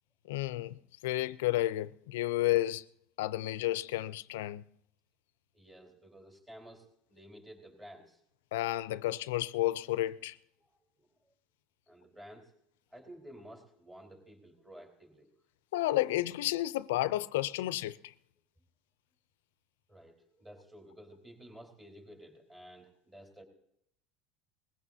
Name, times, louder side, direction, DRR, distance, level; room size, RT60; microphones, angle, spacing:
voice 1, 0.3-2.8 3.2-4.6 8.5-10.4 15.7-18.1, left 16 dB, 90° left, 0.5 m, -31 dB
voice 2, 5.5-8.2 10.6-11.3 11.9-12.5 12.9-15.3 19.9-23.4, equal, 15° right, 4.1 m, -53 dB
20.5 x 16.0 x 2.8 m
supercardioid pair, 115°, 0 cm